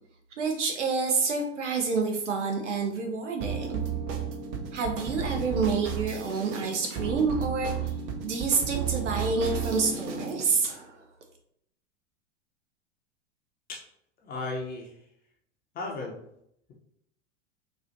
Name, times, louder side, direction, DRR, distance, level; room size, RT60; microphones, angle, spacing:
voice 1, 0.4-3.8 4.7-7.7 8.2-11.0, right 4 dB, 75° right, 2 dB, 0.7 m, -28 dB
sound 1, 3.4-10.5, right 6 dB, 35° right, 0.6 m, -33 dB
voice 2, 14.2-15.0 15.7-16.1, left 3 dB, 25° left, -1 dB, 0.6 m, -35 dB
4.3 x 2.3 x 2.6 m, 0.74 s
figure-of-eight pair, 90°, 36 cm